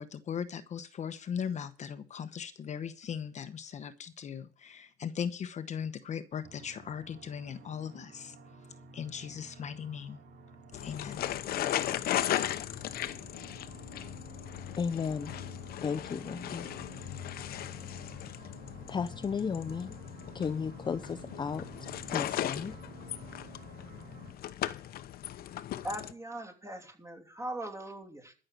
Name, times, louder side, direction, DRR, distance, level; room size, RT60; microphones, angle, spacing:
voice 1, 0.0-8.4 8.9-10.2 10.8-11.3, left 7 dB, 45° left, 1.0 m, -38 dB
sound 1, 6.4-24.3, right 3 dB, 75° right, 3.7 m, -51 dB
sound 2, 10.7-26.1, left 12 dB, 65° left, 0.9 m, -37 dB
voice 2, 14.8-15.3 15.8-16.7 18.9-19.9 20.3-21.6 22.1-22.8, left 6 dB, 25° left, 0.6 m, -34 dB
voice 3, 25.8-28.3, right 1 dB, 15° right, 3.0 m, -40 dB
13.0 x 6.6 x 8.2 m
cardioid pair, 110°, 17 cm